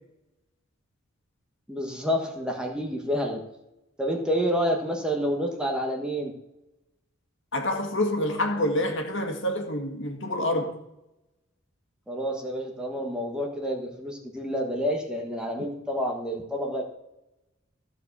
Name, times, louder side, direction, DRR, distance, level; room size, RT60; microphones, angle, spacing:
voice 1, 1.7-3.4 4.0-6.3 12.1-16.8, equal, 5° right, 1.3 m, -29 dB
voice 2, 7.5-10.8, left 1 dB, 60° left, 1.9 m, -27 dB
14.5 x 5.0 x 6.8 m
head